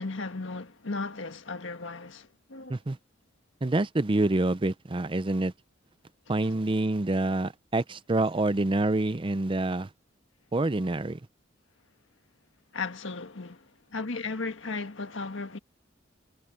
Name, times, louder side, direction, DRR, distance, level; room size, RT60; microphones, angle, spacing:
voice 1, 0.0-2.8 12.7-15.6, left 3 dB, 75° left, 1.6 m, -36 dB
voice 2, 3.6-5.5 6.3-9.9 10.5-11.2, right 2 dB, 25° right, 0.6 m, -27 dB
head